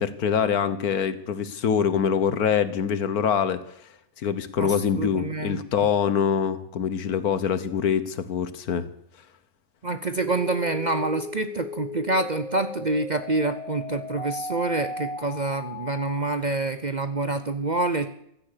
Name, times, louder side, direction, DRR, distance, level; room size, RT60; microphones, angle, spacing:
voice 1, 0.0-3.6 4.2-8.9, left 7 dB, 80° left, 13 dB, 1.5 m, -24 dB
voice 2, 4.6-5.6 9.8-18.1, right 2 dB, 40° right, 10 dB, 0.7 m, -27 dB
sound 1, 10.2-16.2, left 2 dB, 5° left, 2.7 m, -36 dB
16.0 x 13.0 x 6.8 m, 0.74 s
omnidirectional pair, 1.6 m